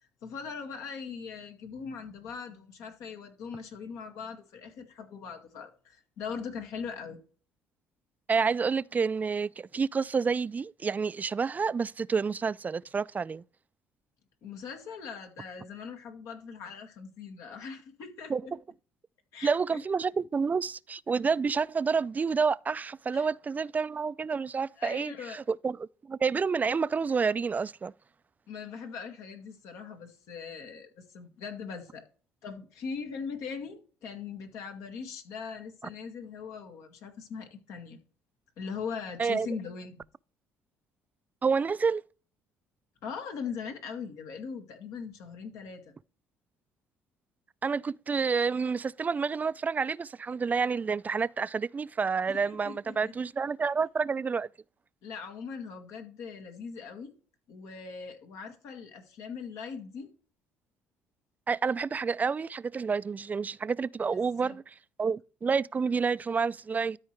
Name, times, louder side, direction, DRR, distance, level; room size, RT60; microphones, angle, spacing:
voice 1, 0.2-7.2 14.4-18.5 19.3-19.8 23.1-23.3 24.8-25.4 28.5-32.0 32.4-38.0 38.6-40.0 43.0-45.9 52.5-53.0 55.0-57.1 57.5-60.1 64.1-64.6, left 6 dB, 75° left, 2.0 m, -40 dB
voice 2, 8.3-13.4 18.3-18.4 19.4-27.9 39.2-39.5 41.4-42.0 47.6-54.5 61.5-67.0, right 5 dB, 30° right, 0.4 m, -29 dB
13.0 x 4.7 x 3.3 m
supercardioid pair, 70°, 6 cm